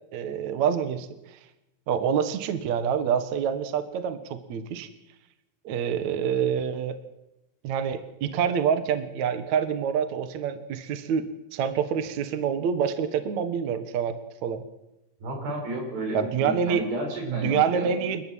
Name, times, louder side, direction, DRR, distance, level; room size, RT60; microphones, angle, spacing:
voice 1, 0.1-1.4 1.9-4.9 5.6-7.0 7.6-14.1 14.4-14.6 16.1-16.8 17.2-18.2, right 7 dB, 60° right, 9 dB, 2.2 m, -27 dB
voice 2, 15.2-17.9, equal, 75° right, 2 dB, 8.3 m, -32 dB
29.5 x 13.5 x 7.7 m, 0.93 s
omnidirectional pair, 4.8 m